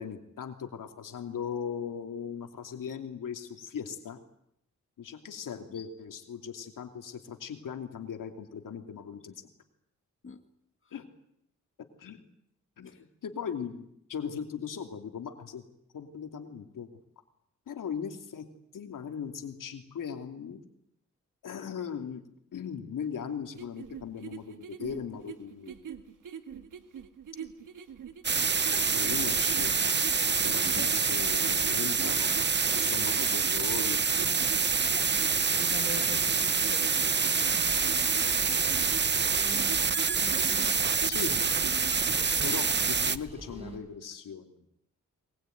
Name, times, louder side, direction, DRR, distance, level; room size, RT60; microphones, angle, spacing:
voice 1, 0.0-4.2 5.0-9.5 10.9-11.1 11.8-12.2 12.8-15.6 15.9-16.9 17.7-18.5 18.7-20.6 21.4-22.2 22.5-25.9 28.7-29.8 30.4-32.3 32.7-34.0 41.1-41.3 42.4-44.6, left 7 dB, 85° left, 5 dB, 2.8 m, -39 dB
sound 1, 23.5-42.1, right 7 dB, 80° right, 2.0 m, -43 dB
sound 2, 28.2-43.2, right 5 dB, 35° right, 0.9 m, -26 dB
voice 2, 30.5-31.0 35.6-37.9, left 5 dB, 40° left, 6 dB, 2.1 m, -44 dB
sound 3, 37.4-43.8, right 1 dB, 20° right, 7.5 m, -45 dB
22.5 x 21.0 x 9.3 m, 0.75 s
cardioid pair, 75°, 31 cm